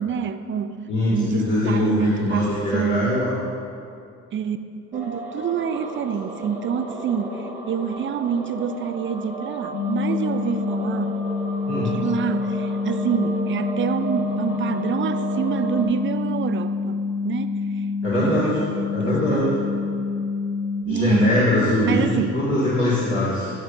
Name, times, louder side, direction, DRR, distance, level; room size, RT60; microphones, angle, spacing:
voice 1, 0.0-0.8 1.1-3.2 4.3-11.2 11.9-17.0 17.2-17.6 18.1-19.5 20.9-21.4 21.8-22.4, right 7 dB, 40° right, 11 dB, 0.4 m, -27 dB
voice 2, 0.9-3.3 11.7-11.9 18.0-19.6 20.8-22.1 22.3-23.5, left 1 dB, 40° left, -10 dB, 2.0 m, -22 dB
sound 1, 4.9-15.9, right 3 dB, 5° right, 1.5 m, -34 dB
sound 2, 9.7-20.8, left 4 dB, 80° left, 0.8 m, -27 dB
11.0 x 7.1 x 2.6 m, 2.5 s
cardioid pair, 90°, 30 cm